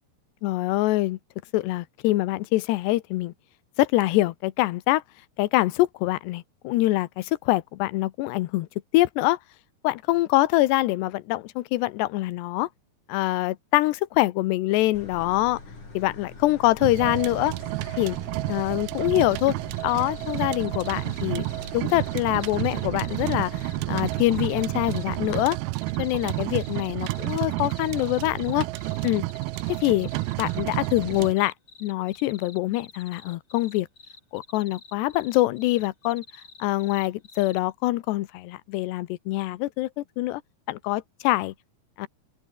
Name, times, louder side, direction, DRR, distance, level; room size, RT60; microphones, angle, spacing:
voice 1, 0.4-1.2 1.5-3.3 3.8-5.0 5.4-8.7 8.9-9.4 9.8-12.7 13.1-15.6 15.9-17.5 18.0-18.2 18.5-19.6 19.8-21.5 21.7-23.6 23.9-25.6 26.0-28.7 29.0-29.2 29.8-30.1 30.4-31.5 31.8-33.9 34.3-36.2 36.6-40.4 40.7-41.5 42.0-42.1, left 17 dB, 80° left, 3.0 m, -24 dB
sound 1, 14.9-25.4, left 3 dB, 45° left, 9.0 m, -44 dB
sound 2, 16.8-31.3, right 20 dB, 80° right, 2.3 m, -30 dB
sound 3, 19.1-37.6, left 3 dB, 20° left, 3.9 m, -49 dB
open air
omnidirectional pair, 4.9 m